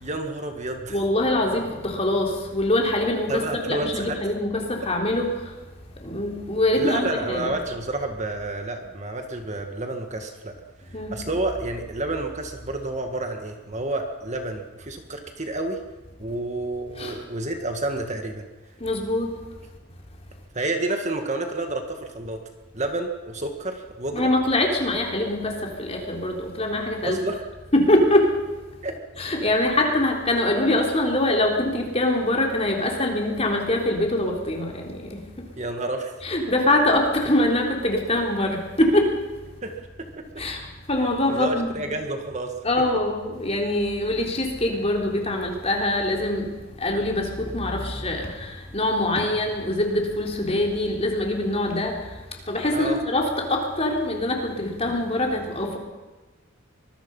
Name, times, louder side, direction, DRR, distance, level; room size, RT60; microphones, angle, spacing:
voice 1, 0.0-1.0 3.3-4.2 6.8-10.5 10.8-15.8 16.2-18.4 20.5-22.4 22.7-24.3 27.0-27.4 28.8-28.9 35.6-36.2 39.6-39.7 40.0-40.2 41.3-42.6 52.7-53.0, right 2 dB, 35° right, 4 dB, 1.9 m, -29 dB
voice 2, 0.9-5.4 6.0-7.5 10.9-11.2 17.0-17.2 18.8-19.3 24.1-27.2 27.7-28.3 29.2-35.2 36.2-39.1 40.4-40.6 40.9-41.8 42.6-46.5 46.8-52.0 52.5-55.8, left 1 dB, 30° left, 0 dB, 3.8 m, -23 dB
24.5 x 21.5 x 5.6 m, 1.2 s
head